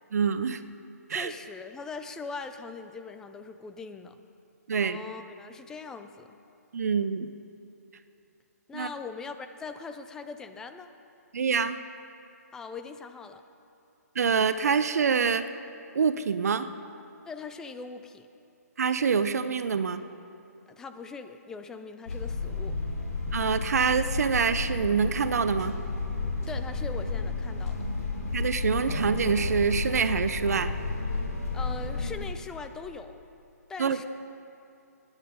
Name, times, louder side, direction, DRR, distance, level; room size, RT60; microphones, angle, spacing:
voice 1, 0.1-0.6 1.1-1.3 4.7-5.0 6.7-7.3 8.7-8.9 11.3-11.8 14.2-15.5 15.9-16.7 18.8-20.0 23.3-25.8 28.3-30.7 33.8-34.0, right 6 dB, 65° right, 11 dB, 0.6 m, -26 dB
voice 2, 1.1-4.2 4.7-6.3 8.7-10.9 12.5-13.4 17.3-18.3 20.7-22.8 26.5-27.9 31.5-33.2 33.7-34.0, left 4 dB, 5° left, 8 dB, 0.4 m, -41 dB
sound 1, 22.1-32.1, left 3 dB, 65° left, 2.6 m, -32 dB
16.5 x 9.9 x 5.1 m, 2.7 s
hypercardioid pair, 150°, 9 cm